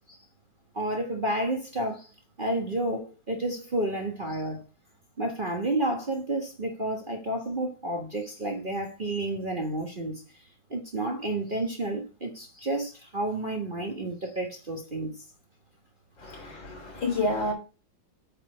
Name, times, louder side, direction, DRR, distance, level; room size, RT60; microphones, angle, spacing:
voice 1, 0.7-2.1 2.4-4.6 5.2-10.2 10.7-15.1, right 1 dB, 30° right, 1.3 m, -30 dB
voice 2, 16.2-17.5, left 2 dB, 75° left, 3.9 m, -29 dB
8.9 x 4.3 x 5.0 m
omnidirectional pair, 2.1 m